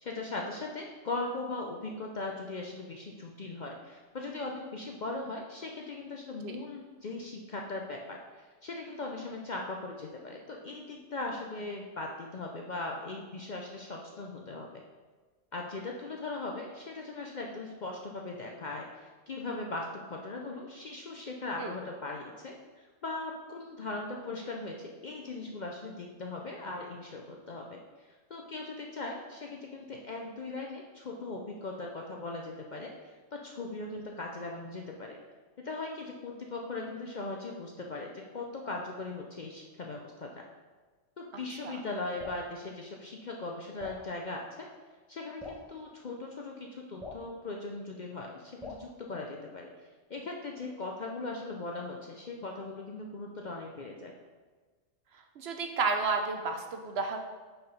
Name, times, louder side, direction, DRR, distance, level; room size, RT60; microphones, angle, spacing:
voice 1, 0.0-14.8 15.5-27.8 28.3-35.2 35.6-40.4 41.2-44.7 45.1-49.7 50.1-54.1, left 2 dB, 50° left, 0 dB, 0.6 m, -39 dB
Drip, 42.2-42.5 43.8-44.0 45.4-45.7 47.0-47.3 48.6-48.9, left 2 dB, ahead, 1.0 m, -42 dB
voice 2, 55.4-57.2, right 4 dB, 60° right, 4 dB, 0.8 m, -31 dB
5.7 x 4.4 x 5.2 m, 1.4 s
omnidirectional pair, 1.3 m